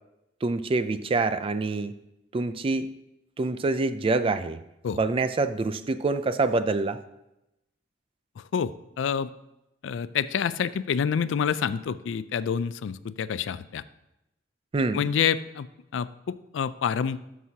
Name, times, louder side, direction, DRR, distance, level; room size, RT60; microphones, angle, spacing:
voice 1, 0.4-1.9 2.3-2.9 3.4-4.6 4.9-7.0 14.7-15.1, right 3 dB, 30° right, 12 dB, 0.4 m, -26 dB
voice 2, 8.4-9.3 9.8-13.8 14.9-15.7 15.9-17.2, left 7 dB, 75° left, 16 dB, 0.3 m, -28 dB
13.0 x 6.1 x 2.8 m, 0.90 s
head